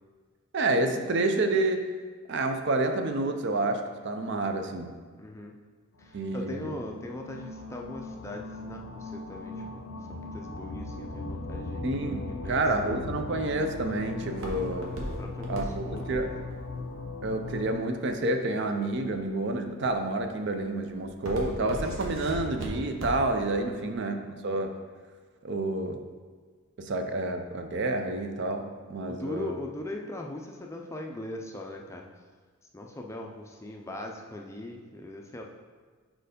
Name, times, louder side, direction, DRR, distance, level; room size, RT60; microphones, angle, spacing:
voice 1, 0.5-1.8 2.3-5.0 6.1-6.7 11.8-14.9 15.5-16.3 17.2-24.2 24.4-24.8 25.4-26.0 26.8-29.5, right 2 dB, 55° right, 6 dB, 0.5 m, -29 dB
voice 2, 5.1-5.5 6.0-9.8 10.1-11.8 12.4-12.9 15.2-16.4 23.7-24.0 29.1-32.1 32.7-35.4, left 1 dB, 15° left, 1 dB, 0.4 m, -40 dB
sound 1, 6.0-17.8, left 2 dB, 75° left, 0.5 m, -39 dB
Walk footsteps, 13.1-18.3 18.9-19.3 19.8-20.2 20.5-23.4 23.8-23.9, equal, 75° right, 1.1 m, -37 dB
4.5 x 4.5 x 5.0 m, 1.5 s
head